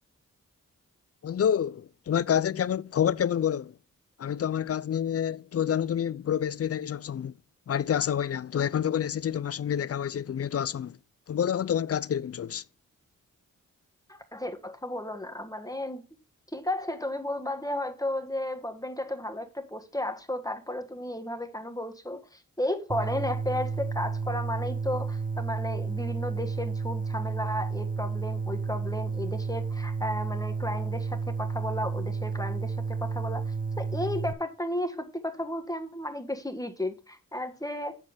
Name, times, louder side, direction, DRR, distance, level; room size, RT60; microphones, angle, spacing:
voice 1, 1.2-3.7 4.2-7.3 7.7-11.0 11.3-12.6, left 9 dB, 45° left, 0.5 m, -28 dB
voice 2, 14.1-16.0 16.5-38.0, left 1 dB, 10° left, 1.5 m, -34 dB
sound 1, 22.9-34.3, right 5 dB, 25° right, 0.8 m, -31 dB
8.1 x 7.4 x 3.4 m
cardioid pair, 45°, 35 cm